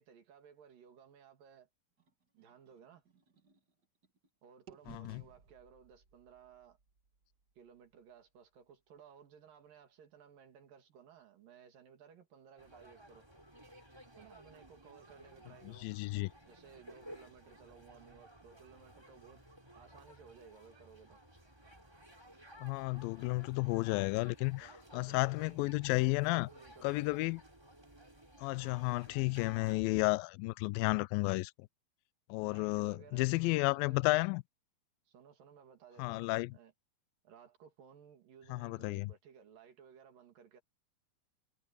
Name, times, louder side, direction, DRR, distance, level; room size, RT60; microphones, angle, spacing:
voice 1, 0.0-1.7 2.3-3.1 4.4-6.8 7.6-13.3 14.2-15.9 16.5-19.4 19.7-21.2 24.6-25.7 26.0-27.0 32.4-34.3 35.1-36.7 37.2-40.6, right 7 dB, 65° right, 4.0 m, -58 dB
sound 1, 2.0-4.3 4.7-8.6, right 7 dB, 40° right, 1.6 m, -62 dB
voice 2, 4.9-5.2 15.7-16.3 22.6-26.5 26.8-27.4 28.4-31.7 32.3-34.4 36.0-36.5 38.5-39.1, left 24 dB, 80° left, 2.2 m, -32 dB
sound 2, 12.6-29.8, equal, 5° right, 4.2 m, -57 dB
omnidirectional pair, 4.4 m